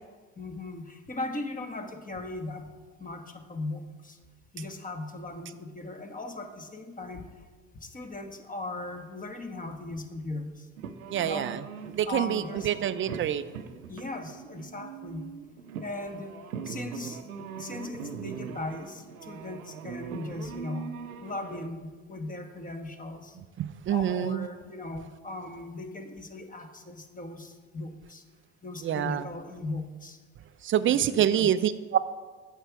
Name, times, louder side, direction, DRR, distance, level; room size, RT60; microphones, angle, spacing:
voice 1, 0.4-2.7 3.0-4.2 4.5-7.3 7.8-10.7 11.2-11.5 12.0-12.8 13.9-15.3 15.8-16.3 16.6-17.2 17.6-21.0 21.2-23.4 23.9-28.2 28.6-30.2 30.9-31.5, left 2 dB, 20° left, 6 dB, 1.1 m, -38 dB
sound 1, 10.8-21.7, right 6 dB, 90° right, 0.6 m, -41 dB
voice 2, 11.1-11.6 11.9-13.4 23.6-24.5 28.8-29.2 30.6-32.0, right 10 dB, 30° right, 14 dB, 0.4 m, -26 dB
8.0 x 7.3 x 4.7 m, 1.4 s
hypercardioid pair, 65°, 41 cm